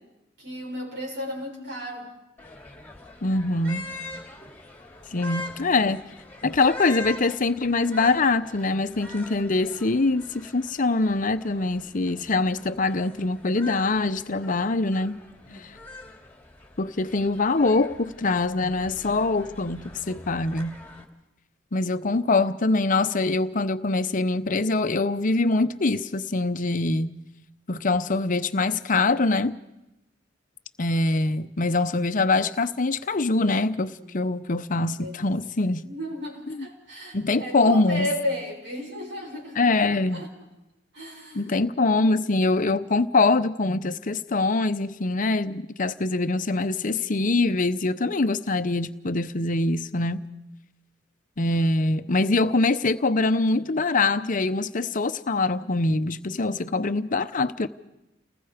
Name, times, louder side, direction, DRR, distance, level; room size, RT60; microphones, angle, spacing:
voice 1, 0.4-2.1 15.4-15.7 34.0-34.2 34.8-35.2 35.8-40.3 40.9-41.6, left 1 dB, 65° right, 6.7 m, -34 dB
sound 1, 2.4-21.0, left 2 dB, 10° left, 2.7 m, -43 dB
voice 2, 3.2-3.9 5.1-6.0 6.4-15.2 16.8-20.8 21.7-27.2 27.7-29.6 30.8-35.9 36.5-36.6 37.1-38.1 39.6-40.3 41.3-50.3 51.4-57.7, left 3 dB, 45° left, 0.8 m, -24 dB
30.0 x 20.0 x 5.1 m
head